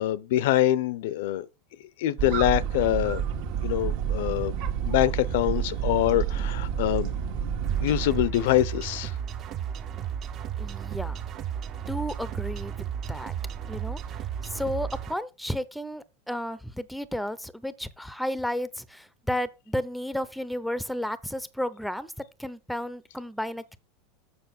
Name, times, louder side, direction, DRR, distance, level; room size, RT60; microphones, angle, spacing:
voice 1, 0.0-1.5 2.0-3.2 3.6-4.6 4.8-7.1 7.8-9.1, left 13 dB, 70° left, 0.7 m, -24 dB
sound 1, 2.2-8.3, right 8 dB, 60° right, 1.5 m, -29 dB
sound 2, 7.6-15.1, right 8 dB, 35° right, 0.8 m, -34 dB
voice 2, 10.6-11.2 11.9-13.3 13.7-22.1 22.4-23.8, equal, ahead, 0.6 m, -33 dB
7.1 x 6.2 x 6.0 m
supercardioid pair, 130°, 0 cm